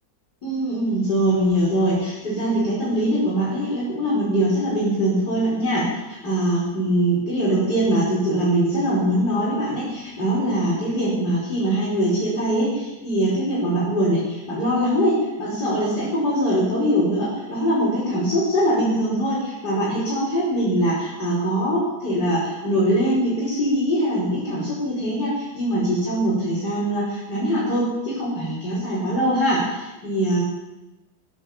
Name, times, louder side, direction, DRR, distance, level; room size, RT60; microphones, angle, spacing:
voice 1, 0.4-30.4, equal, 60° left, -8 dB, 5.7 m, -22 dB
16.0 x 10.5 x 7.5 m, 1.0 s
omnidirectional pair, 2.0 m